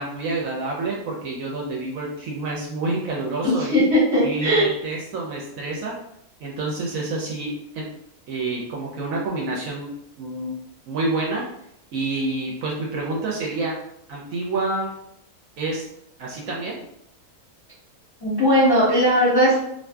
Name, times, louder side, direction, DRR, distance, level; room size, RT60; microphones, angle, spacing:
voice 1, 0.0-3.8 4.2-5.9 6.4-7.8 8.3-9.9 10.2-10.5 10.9-11.4 11.9-13.8 14.1-14.9 15.6-15.8 16.2-16.8, right 2 dB, 70° right, -2 dB, 0.9 m, -28 dB
voice 2, 3.4-4.7 18.2-19.6, equal, 20° left, -10 dB, 0.7 m, -18 dB
2.6 x 2.5 x 2.2 m, 0.74 s
omnidirectional pair, 1.6 m